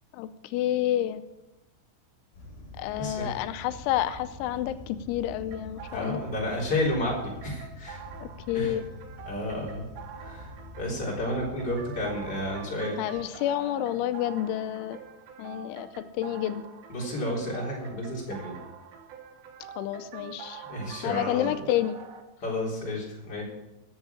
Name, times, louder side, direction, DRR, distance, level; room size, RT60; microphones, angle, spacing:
voice 1, 0.1-1.2 2.8-6.2 8.2-8.8 13.0-15.0 15.4-15.9 16.1-16.6 19.8-20.6 21.0-22.0, left 12 dB, 90° left, 11 dB, 3.1 m, -29 dB
sound 1, 2.3-12.6, left 1 dB, 55° left, 4.8 m, -46 dB
voice 2, 3.0-3.3 5.9-8.2 8.5-8.8 9.2-9.9 10.1-13.2 16.9-18.6 20.7-21.5 22.4-23.4, left 1 dB, 25° left, -3 dB, 3.8 m, -31 dB
sound 2, 5.5-22.2, right 7 dB, 65° right, 2.7 m, -46 dB
14.5 x 7.3 x 8.4 m, 0.95 s
omnidirectional pair, 5.4 m